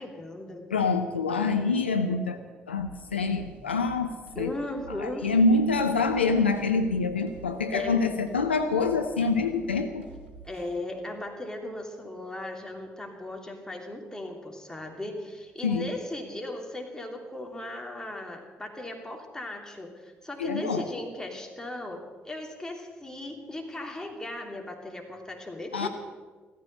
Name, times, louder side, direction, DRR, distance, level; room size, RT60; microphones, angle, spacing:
voice 1, 0.0-0.6 4.3-5.3 7.7-8.2 10.4-25.9, left 1 dB, 10° left, 2 dB, 3.1 m, -37 dB
voice 2, 0.7-2.4 2.7-4.5 4.9-10.1 15.6-15.9 20.4-20.9 25.7-25.9, left 3 dB, 85° left, 7 dB, 0.7 m, -26 dB
sound 1, 2.8-10.8, right 4 dB, 75° right, 1.6 m, -48 dB
15.5 x 14.0 x 6.7 m, 1.4 s
figure-of-eight pair, 45°, 6 cm